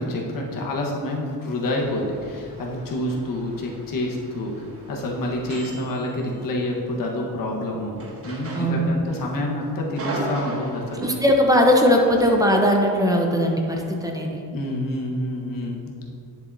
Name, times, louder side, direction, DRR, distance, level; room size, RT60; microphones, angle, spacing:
voice 1, 0.0-4.5 4.9-11.1 14.5-16.1, left 1 dB, 65° left, -1 dB, 1.3 m, -28 dB
sound 1, 1.8-6.8 8.0-9.2 9.6-11.3 12.0-12.5, right 2 dB, 40° right, 1.2 m, -37 dB
voice 2, 8.5-8.9 11.0-14.4, equal, 10° right, 1 dB, 0.8 m, -19 dB
10.0 x 6.8 x 2.7 m, 2.6 s
cardioid pair, 135°, 37 cm